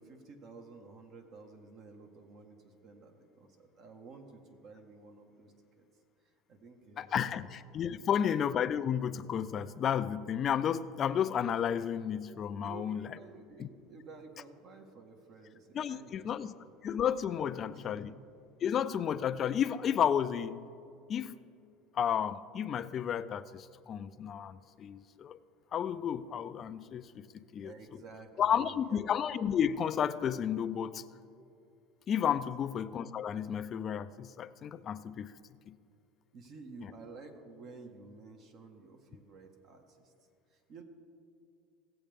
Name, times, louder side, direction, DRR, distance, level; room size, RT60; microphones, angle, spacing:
voice 1, 0.0-5.8 6.5-7.4 8.0-8.2 12.6-16.6 17.6-18.0 27.6-29.1 36.3-40.1 40.5-40.8, right 3 dB, 50° right, 4 dB, 1.5 m, -52 dB
voice 2, 7.0-13.1 13.6-13.7 15.7-16.5 16.8-18.1 18.6-20.6 21.1-21.4 21.9-25.4 25.7-28.0 28.4-31.0 32.1-35.4 35.7-35.8, left 8 dB, 40° left, 13 dB, 0.4 m, -32 dB
17.0 x 7.7 x 3.6 m, 2.5 s
supercardioid pair, 115°, 0 cm